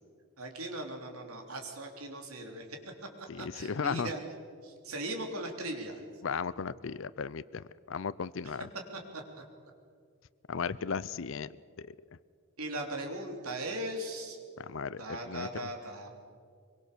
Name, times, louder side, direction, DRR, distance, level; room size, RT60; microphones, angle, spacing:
voice 1, 0.4-2.7 3.5-4.2 4.6-6.0 8.9-9.2 12.6-14.4 15.0-16.1, right 1 dB, 80° right, 3 dB, 3.4 m, -38 dB
voice 2, 3.3-4.1 6.2-8.7 10.5-11.5 11.9-12.0 14.6-15.5, left 5 dB, 60° left, 18 dB, 0.5 m, -35 dB
24.5 x 23.5 x 6.8 m, 2.2 s
head